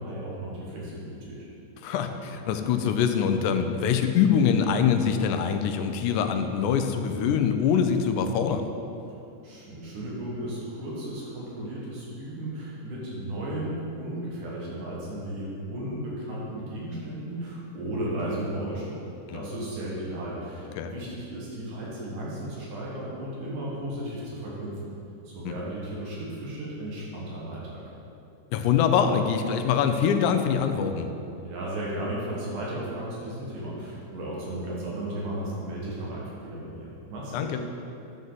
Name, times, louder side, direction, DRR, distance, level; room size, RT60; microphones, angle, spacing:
voice 1, 0.0-1.4 9.4-19.0 19.3-24.9 25.2-27.8 31.4-37.5, right 1 dB, 80° right, -5 dB, 3.2 m, -35 dB
voice 2, 1.8-8.7 19.3-19.4 20.8-20.9 25.5-25.6 28.5-31.1 37.3-37.6, left 7 dB, 80° left, 7 dB, 2.1 m, -24 dB
11.0 x 7.7 x 4.0 m, 2.7 s
omnidirectional pair, 3.6 m